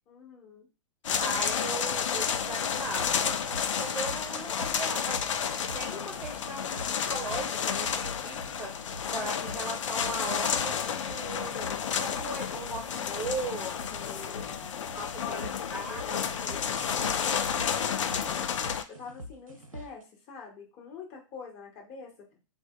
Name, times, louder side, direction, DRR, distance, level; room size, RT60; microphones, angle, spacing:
voice 1, 0.1-0.7 14.1-14.9 15.2-18.6 18.9-22.3, left 5 dB, 35° left, -1 dB, 1.5 m, -45 dB
sound 1, 1.0-18.8, left 7 dB, 70° left, 0.5 m, -31 dB
voice 2, 1.2-3.4 3.7-5.3 5.7-6.8 7.1-8.8 9.0-14.4 14.9-16.2, right 2 dB, 10° right, -2 dB, 0.8 m, -38 dB
sound 2, 2.7-20.0, equal, 90° right, 0.6 m, -46 dB
3.5 x 2.7 x 3.1 m, 0.29 s
figure-of-eight pair, 110°, 17 cm